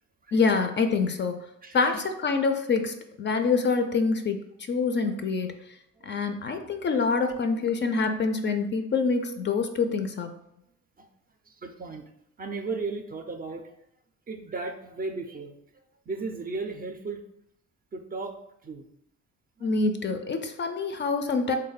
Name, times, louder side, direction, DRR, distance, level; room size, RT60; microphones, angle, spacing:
voice 1, 0.3-1.4 1.7-4.4 4.7-5.5 6.0-10.3 19.6-21.6, left 4 dB, 40° left, 6 dB, 0.4 m, -26 dB
voice 2, 1.6-1.9 6.0-6.2 6.9-7.0 7.6-7.7 11.0-11.1 11.5-12.1 12.4-13.7 14.3-17.2 17.9-18.4 18.6-18.9 19.6-19.7, right 3 dB, 30° right, 5 dB, 0.4 m, -36 dB
3.4 x 2.2 x 3.9 m, 0.78 s
cardioid pair, 90°, 30 cm